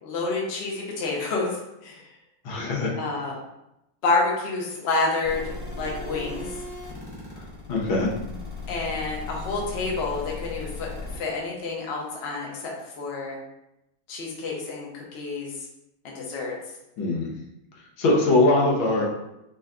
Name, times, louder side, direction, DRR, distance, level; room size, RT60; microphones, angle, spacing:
voice 1, 0.0-2.1 3.0-3.3 4.0-6.5 8.7-10.9 11.1-13.4 14.1-15.5 16.0-16.6, left 3 dB, 55° left, -2 dB, 0.7 m, -29 dB
voice 2, 2.4-2.9 7.7-8.1 17.0-17.3 18.0-19.1, left 2 dB, 85° left, -2 dB, 1.7 m, -21 dB
sound 1, 5.2-11.2, left 3 dB, 10° left, 0.8 m, -37 dB
4.4 x 2.2 x 3.7 m, 0.87 s
omnidirectional pair, 2.2 m